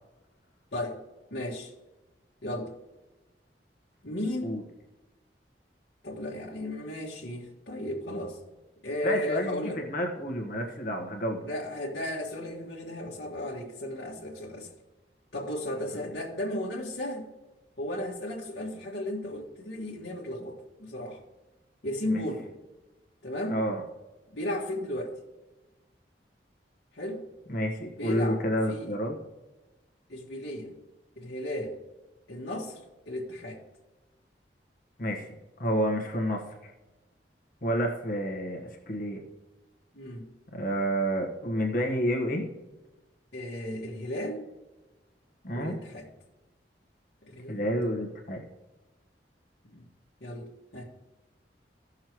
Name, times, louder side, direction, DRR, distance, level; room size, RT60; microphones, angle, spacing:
voice 1, 1.3-1.7 2.4-2.7 4.0-4.6 6.0-8.4 8.8-9.8 11.4-14.7 15.3-17.2 17.8-21.2 21.8-22.5 23.2-23.7 24.3-25.1 26.9-27.2 27.9-28.4 28.7-29.0 30.1-30.7 31.2-31.8 32.3-32.8 33.1-33.6 39.9-40.2 43.3-44.4 45.5-46.1 47.3-47.7 49.7-49.8 50.2-50.8, left 1 dB, 70° left, -6 dB, 1.6 m, -34 dB
voice 2, 9.0-11.4 22.1-22.2 23.5-23.8 27.5-29.1 35.0-35.3 35.6-36.4 37.6-38.6 38.9-39.2 40.5-42.4 45.4-45.8 47.5-48.4, equal, 55° left, 1 dB, 1.5 m, -29 dB
16.0 x 6.6 x 3.1 m, 1.1 s
head